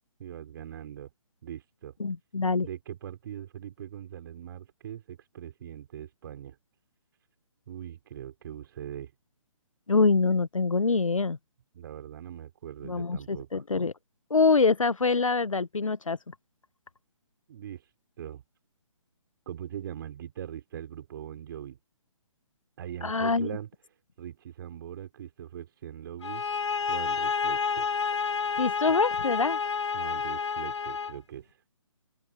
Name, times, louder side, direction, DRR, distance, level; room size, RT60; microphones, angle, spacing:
voice 1, 0.2-1.1 1.4-1.9 2.6-6.6 7.7-9.1 11.7-13.6 17.5-17.8 18.2-18.4 19.5-21.8 22.8-23.7 24.2-26.4 26.9-27.9 29.9-31.5, right 10 dB, 45° right, 4.6 m, -41 dB
voice 2, 2.0-2.7 9.9-11.4 12.8-13.9 14.3-16.2 23.0-23.6 28.6-29.6, left 4 dB, 85° left, 1.0 m, -25 dB
sound 1, 26.2-31.2, left 5 dB, 65° left, 6.0 m, -29 dB
open air
figure-of-eight pair, 140°, 16 cm